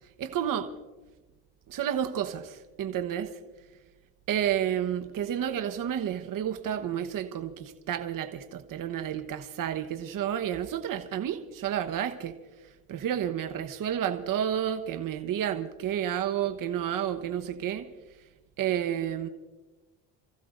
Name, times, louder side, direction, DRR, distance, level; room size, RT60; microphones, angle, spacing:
voice 1, 0.2-0.7 1.7-3.3 4.3-12.4 12.9-17.8 18.6-19.3, right 10 dB, 50° right, 7 dB, 1.2 m, -30 dB
29.5 x 15.0 x 2.6 m, 1.2 s
supercardioid pair, 70°, 41 cm